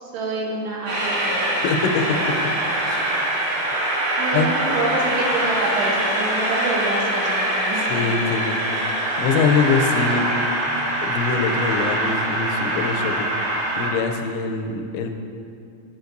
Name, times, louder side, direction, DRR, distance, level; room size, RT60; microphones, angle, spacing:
voice 1, 0.0-1.6 2.1-2.2 4.2-7.9, right 2 dB, 75° right, -2 dB, 3.0 m, -27 dB
Train, 0.9-13.9, right 1 dB, 50° right, 3.4 m, -23 dB
voice 2, 1.6-2.3 2.9-3.1 4.3-4.5 7.9-8.9 9.2-10.3 11.0-13.3 13.8-15.1, left 5 dB, 90° left, 5 dB, 2.9 m, -23 dB
13.0 x 6.4 x 2.6 m, 2.4 s
omnidirectional pair, 5.1 m